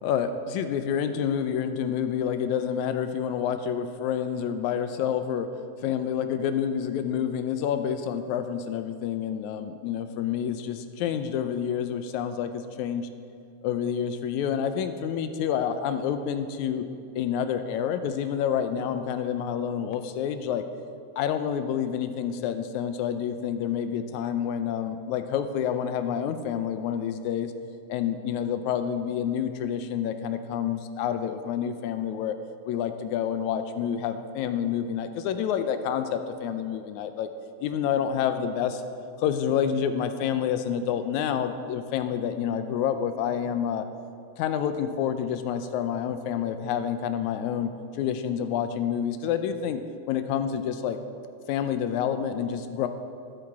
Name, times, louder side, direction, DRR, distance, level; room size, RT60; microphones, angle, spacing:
voice 1, 0.0-5.5 5.8-13.1 13.6-16.9 17.2-20.6 21.2-27.5 27.9-32.3 32.7-37.3 37.6-38.8 39.2-43.8 44.4-47.7 48.0-49.8 50.1-51.0 51.5-52.9, left 8 dB, 80° left, 9 dB, 1.9 m, -28 dB
16.0 x 8.8 x 3.6 m, 2.4 s
omnidirectional pair, 3.6 m